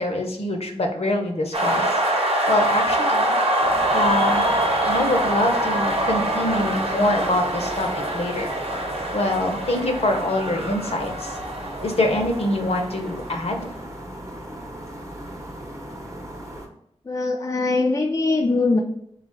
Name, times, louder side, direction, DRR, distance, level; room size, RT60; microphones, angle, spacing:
voice 1, 0.0-1.9 2.5-3.3 3.9-4.4 4.9-8.5 9.1-11.4 11.8-13.7, left 1 dB, 65° left, 3 dB, 0.7 m, -24 dB
sound 1, 1.5-13.2, right 1 dB, 65° right, 0.8 m, -24 dB
sound 2, 3.6-16.7, right 1 dB, 25° right, 0.7 m, -37 dB
voice 2, 17.1-18.8, left 3 dB, 30° left, 2 dB, 0.3 m, -21 dB
3.8 x 2.4 x 4.3 m, 0.75 s
wide cardioid pair, 70°, 11 cm